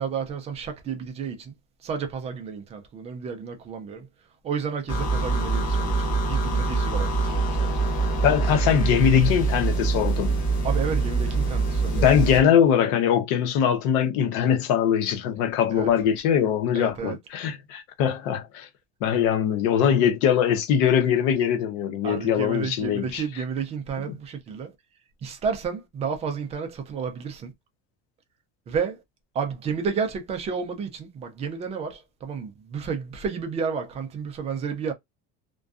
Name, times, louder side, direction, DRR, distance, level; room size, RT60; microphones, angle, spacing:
voice 1, 0.0-1.5 1.8-4.1 4.4-7.8 10.6-12.1 15.7-15.9 16.7-17.2 22.0-24.7 25.2-27.5 28.7-29.0 29.3-34.9, right 6 dB, 20° right, 0.3 m, -31 dB
sound 1, 4.9-12.4, right 3 dB, 25° left, 0.7 m, -24 dB
voice 2, 8.1-10.4 11.9-18.7 19.0-23.2, left 8 dB, 75° left, 0.8 m, -22 dB
2.5 x 2.2 x 2.3 m
cardioid pair, 180°, 31 cm